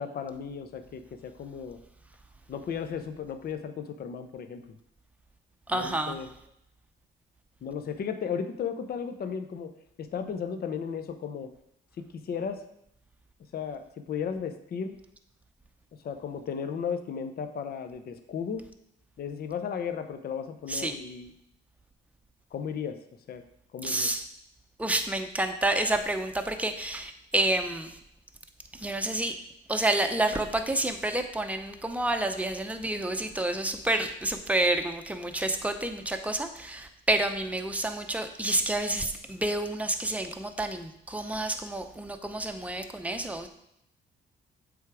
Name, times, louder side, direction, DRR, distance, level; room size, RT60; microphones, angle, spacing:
voice 1, 0.0-1.8 2.5-4.6 5.7-6.3 7.6-9.7 10.0-11.5 12.0-12.6 13.5-14.9 16.0-18.6 19.2-21.3 22.5-23.0 23.3-23.4 23.7-24.1, left 7 dB, 50° left, 9 dB, 0.6 m, -35 dB
voice 2, 5.7-6.1 20.7-20.9 23.8-24.2 24.8-27.9 28.8-29.3 29.7-43.5, right 1 dB, 5° right, 6 dB, 0.7 m, -29 dB
7.8 x 3.5 x 4.8 m, 0.76 s
cardioid pair, 90°, 20 cm